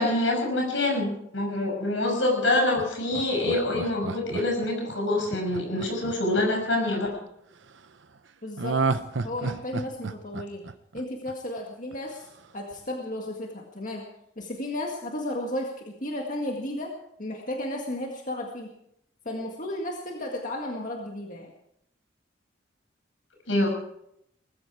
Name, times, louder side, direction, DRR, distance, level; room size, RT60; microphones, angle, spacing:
voice 1, 0.0-7.1 23.5-23.7, left 1 dB, 80° left, 1 dB, 6.3 m, -25 dB
Laughter, 2.8-7.0 8.6-11.6 11.9-12.0, right 4 dB, 75° right, 0.9 m, -31 dB
voice 2, 8.4-10.6 10.9-12.3 12.5-14.0 14.4-16.9 17.2-18.7 19.3-21.5, left 1 dB, 45° left, 0 dB, 1.9 m, -34 dB
19.5 x 14.5 x 4.8 m, 0.78 s
head